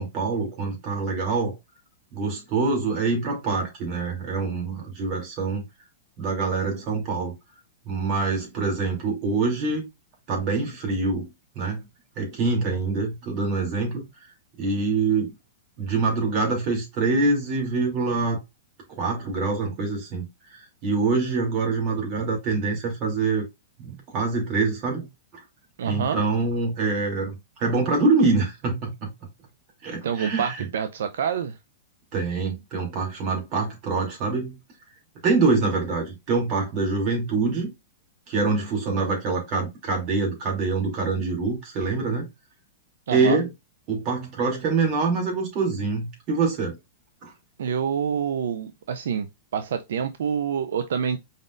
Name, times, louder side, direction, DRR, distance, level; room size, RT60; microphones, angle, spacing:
voice 1, 0.0-1.5 2.1-5.6 6.2-7.3 7.9-9.8 10.3-11.3 11.5-11.8 12.2-14.0 14.6-15.3 15.8-18.4 19.0-20.2 20.5-23.4 23.8-25.1 25.8-29.1 29.8-30.7 32.1-34.5 35.2-37.7 38.3-42.2 43.1-43.5 43.9-46.8 47.2-47.3, right 4 dB, 40° right, 2.9 m, -25 dB
voice 2, 25.8-26.2 30.0-31.6 43.1-43.4 47.6-51.2, right 7 dB, 80° right, 0.5 m, -27 dB
5.0 x 4.1 x 2.5 m
hypercardioid pair, 145°, 0 cm